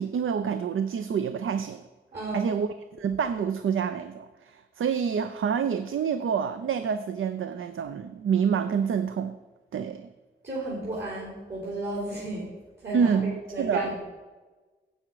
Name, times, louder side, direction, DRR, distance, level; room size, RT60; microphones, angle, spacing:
voice 1, 0.0-1.8 2.3-2.7 3.0-9.3 9.7-10.1 12.9-13.9, right 7 dB, 90° right, 11 dB, 0.5 m, -27 dB
voice 2, 2.1-2.5 10.4-14.0, right 2 dB, 60° right, -5 dB, 3.7 m, -33 dB
9.8 x 7.9 x 4.6 m, 1.3 s
wide cardioid pair, 85°, 20 cm